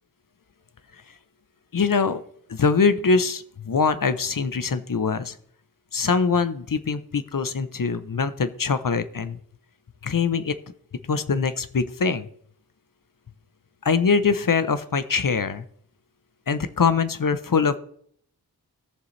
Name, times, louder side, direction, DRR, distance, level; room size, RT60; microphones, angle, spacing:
voice 1, 1.7-2.2 2.5-5.4 5.9-9.4 10.0-10.5 11.1-12.3 13.8-15.6 16.5-17.8, left 5 dB, 60° left, 13 dB, 0.7 m, -23 dB
17.5 x 6.9 x 3.2 m, 0.64 s
wide cardioid pair, 60°, 38 cm